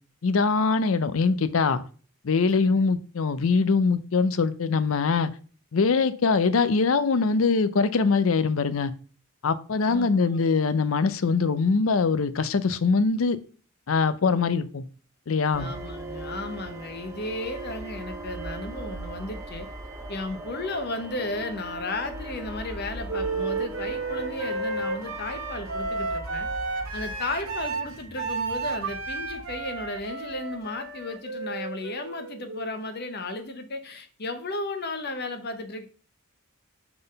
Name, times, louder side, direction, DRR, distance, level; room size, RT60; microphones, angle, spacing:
voice 1, 0.2-1.8 2.2-5.3 5.7-8.9 9.4-13.4 13.9-14.8 15.3-15.7, left 4 dB, 70° left, 13 dB, 0.5 m, -23 dB
voice 2, 2.5-2.8 9.9-10.4 14.3-14.4 15.6-19.7 20.1-26.5 26.9-35.9, left 2 dB, 50° left, 8 dB, 0.9 m, -34 dB
sound 1, 15.5-30.8, right 1 dB, 15° right, 0.8 m, -40 dB
Wind instrument woodwind instrument, 23.1-32.9, right 3 dB, 65° right, 1.0 m, -32 dB
6.0 x 3.9 x 5.2 m, 0.39 s
head